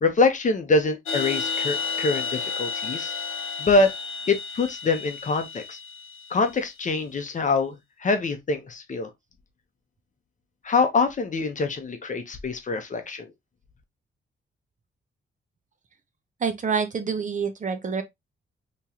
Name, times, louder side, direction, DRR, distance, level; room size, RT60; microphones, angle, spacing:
voice 1, 0.0-3.1 3.6-3.9 4.3-5.8 6.3-7.7 8.0-9.1 10.6-13.3, left 3 dB, 40° left, 0.7 m, -24 dB
sound 1, 1.0-6.6, left 5 dB, 80° left, 0.7 m, -32 dB
voice 2, 16.4-18.0, right 6 dB, 40° right, 0.6 m, -27 dB
3.6 x 3.0 x 2.8 m
wide cardioid pair, 170°, 21 cm